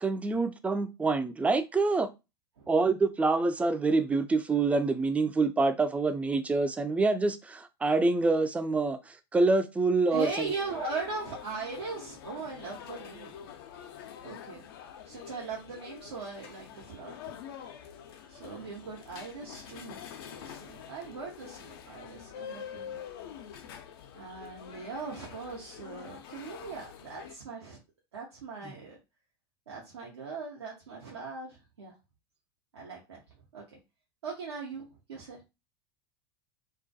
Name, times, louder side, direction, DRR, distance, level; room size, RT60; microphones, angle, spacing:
voice 1, 0.0-2.1 2.7-10.3, right 3 dB, 10° right, 0.3 m, -26 dB
voice 2, 10.1-13.4 14.2-14.6 15.1-17.3 18.3-20.0 20.3-23.0 24.1-27.8 28.1-29.0 29.7-31.9 32.7-33.2 33.5-33.8 34.2-35.4, right 4 dB, 85° right, 0.7 m, -39 dB
sound 1, 10.2-27.4, left 8 dB, 65° left, 0.4 m, -46 dB
2.3 x 2.1 x 2.6 m
hypercardioid pair, 85°, 13 cm